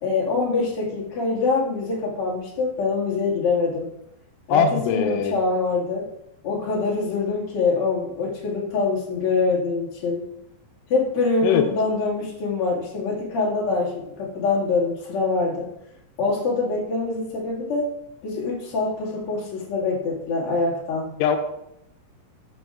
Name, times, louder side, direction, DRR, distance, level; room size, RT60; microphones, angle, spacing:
voice 1, 0.0-3.9 4.5-6.1 6.4-10.3 10.9-15.7 16.2-17.9 18.2-21.1, left 3 dB, 40° left, -4 dB, 2.3 m, -24 dB
voice 2, 4.5-5.3 11.4-11.6 21.2-21.4, left 8 dB, 85° left, 6 dB, 2.9 m, -21 dB
13.5 x 6.2 x 2.4 m, 0.81 s
omnidirectional pair, 4.8 m